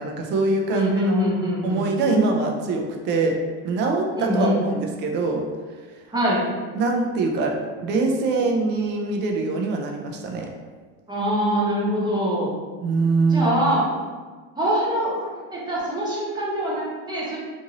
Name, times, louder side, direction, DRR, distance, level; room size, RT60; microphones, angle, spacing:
voice 1, 0.0-1.2 1.6-3.4 3.6-5.4 6.7-10.5 12.8-13.6, right 3 dB, 30° right, 2 dB, 0.4 m, -23 dB
voice 2, 0.7-1.8 4.2-4.6 6.1-6.4 11.1-12.5 13.3-13.8 14.6-17.4, equal, 10° right, -7 dB, 0.8 m, -24 dB
2.7 x 2.6 x 2.8 m, 1.4 s
supercardioid pair, 130°, 37 cm